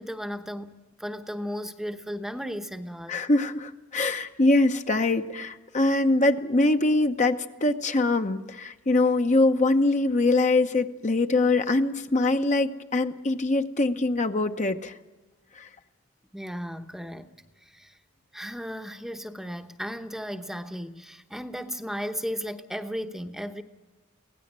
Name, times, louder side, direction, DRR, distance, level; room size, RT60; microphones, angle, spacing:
voice 1, 0.0-3.2 16.3-18.0 18.3-23.6, equal, ahead, 1.0 m, -35 dB
voice 2, 3.1-14.9 15.6-15.7, left 2 dB, 35° left, 0.9 m, -23 dB
24.5 x 17.5 x 7.5 m
head